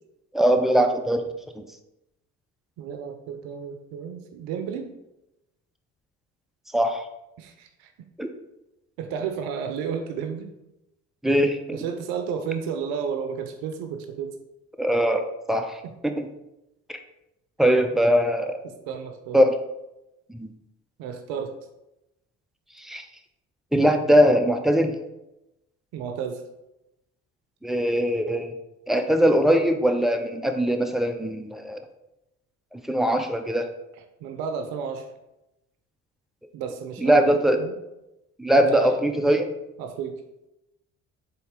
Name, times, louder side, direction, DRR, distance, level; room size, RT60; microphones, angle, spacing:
voice 1, 0.3-1.2 1.5-1.6 6.7-7.0 8.2-8.3 11.2-11.8 14.8-15.8 16.0-16.3 16.9-17.0 17.6-18.6 19.3-19.5 20.3-20.5 22.8-23.0 23.7-24.9 27.6-28.5 28.9-31.8 32.7-33.7 37.0-37.6 38.4-39.5, equal, ahead, 5 dB, 0.5 m, -21 dB
voice 2, 2.8-4.9 7.4-7.9 9.0-10.5 11.7-14.4 15.8-15.9 18.6-19.5 21.0-21.5 25.9-26.4 34.2-35.1 36.5-37.7 38.6-39.0 39.8-40.2, right 6 dB, 70° right, 6 dB, 0.6 m, -32 dB
4.0 x 3.5 x 3.7 m, 0.92 s
hypercardioid pair, 55°, 37 cm